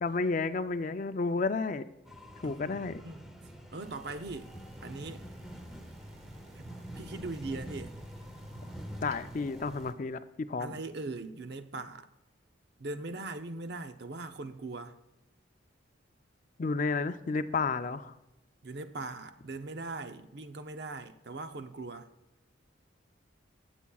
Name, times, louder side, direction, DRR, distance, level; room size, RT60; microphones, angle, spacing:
voice 1, 0.0-1.8 2.4-3.0 9.0-10.8 16.6-18.1, left 4 dB, 40° left, 0.4 m, -31 dB
sound 1, 2.1-9.9, equal, ahead, 0.8 m, -46 dB
voice 2, 2.4-3.2 3.7-4.5 4.8-5.3 6.6-7.9 10.6-12.1 12.8-14.9 18.6-22.1, right 3 dB, 55° right, 0.6 m, -40 dB
sound 2, 3.8-9.9, right 1 dB, 35° right, 0.9 m, -57 dB
18.5 x 7.1 x 2.3 m
head